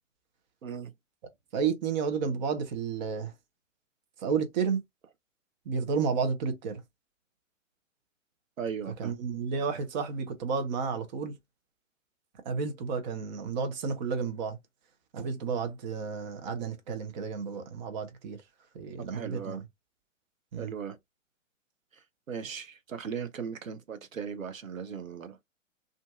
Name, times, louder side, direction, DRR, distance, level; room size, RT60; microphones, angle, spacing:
voice 1, 0.6-0.9 8.6-9.1 19.0-19.6 20.6-21.0 22.3-25.4, right 6 dB, 80° right, 0.7 m, -37 dB
voice 2, 1.5-3.3 4.2-4.8 5.7-6.8 9.0-11.4 12.4-14.6 15.1-18.4 18.7-19.7 20.5-20.7, right 5 dB, 35° right, 0.7 m, -31 dB
2.6 x 2.4 x 2.3 m
figure-of-eight pair, 115°, 39 cm